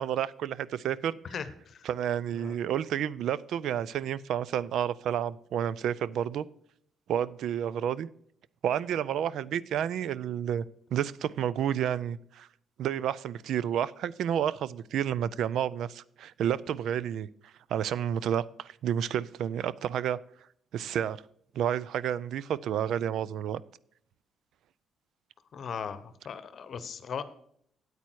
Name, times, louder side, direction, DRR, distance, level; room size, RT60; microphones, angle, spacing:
voice 1, 0.0-1.2 1.8-6.5 7.1-8.1 8.6-10.6 10.9-12.5 12.8-17.3 17.7-20.2 20.7-21.2 21.5-23.6, right 9 dB, 75° right, 0.4 m, -30 dB
voice 2, 1.3-1.9 2.4-2.6 25.5-27.2, left 7 dB, 55° left, 0.9 m, -38 dB
8.7 x 8.3 x 4.6 m
cardioid pair, 90°, 0 cm